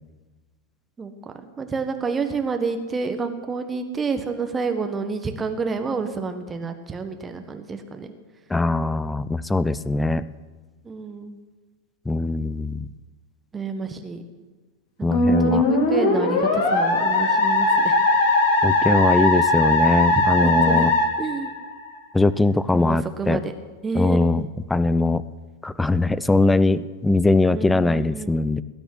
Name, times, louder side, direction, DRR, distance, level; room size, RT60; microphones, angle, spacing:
voice 1, 1.0-8.1 10.8-11.4 13.5-14.2 15.0-18.0 20.4-20.9 21.2-21.5 22.7-23.5 23.8-24.5 27.5-28.4, right 4 dB, 15° right, 6 dB, 1.5 m, -29 dB
voice 2, 8.5-10.2 12.1-12.9 15.0-15.6 18.6-20.9 22.1-23.4 23.9-24.4 24.7-25.2 25.6-28.6, left 2 dB, 5° left, 17 dB, 0.5 m, -21 dB
Musical instrument, 15.1-22.0, left 2 dB, 55° left, 3.0 m, -20 dB
19.5 x 7.1 x 9.9 m, 1.3 s
figure-of-eight pair, 90°, 0 cm